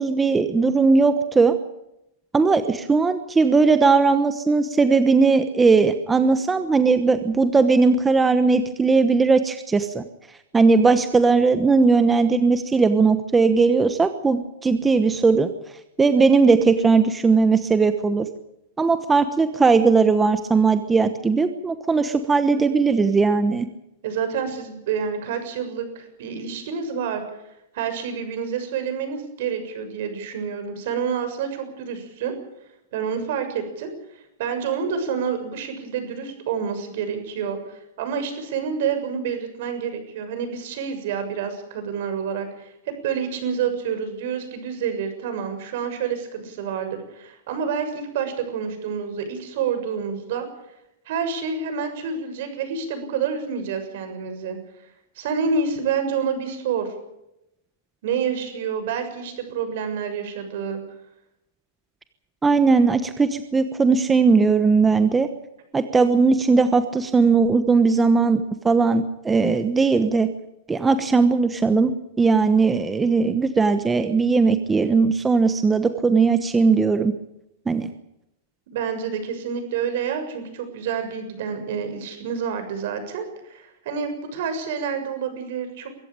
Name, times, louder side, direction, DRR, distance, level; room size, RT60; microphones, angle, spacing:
voice 1, 0.0-1.5 2.3-10.0 10.5-15.5 16.0-18.3 18.8-23.7 62.4-65.3 65.7-70.3 70.7-71.9 72.2-77.1 77.7-77.9, right 4 dB, 10° right, 9 dB, 1.1 m, -18 dB
voice 2, 24.0-27.2 27.7-32.3 32.9-50.4 51.0-54.6 55.2-56.9 58.0-60.8 78.7-85.9, right 6 dB, 60° right, 8 dB, 6.8 m, -28 dB
23.5 x 14.5 x 8.9 m, 0.87 s
supercardioid pair, 150°, 0 cm